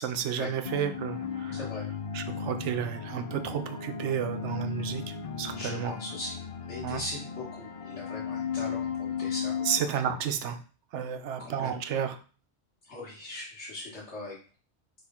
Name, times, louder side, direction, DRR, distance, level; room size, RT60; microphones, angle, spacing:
voice 1, 0.0-1.6 2.1-5.9 6.8-7.0 9.7-10.6 10.9-12.2, right 8 dB, 85° right, 8 dB, 0.9 m, -32 dB
sound 1, 0.6-9.8, left 6 dB, 60° left, 0.3 m, -35 dB
voice 2, 1.5-1.8 5.5-6.4 6.6-9.6 9.9-10.1 11.4-11.7 12.8-14.4, left 2 dB, 75° left, -8 dB, 1.6 m, -40 dB
4.3 x 3.2 x 3.5 m, 0.38 s
omnidirectional pair, 1.2 m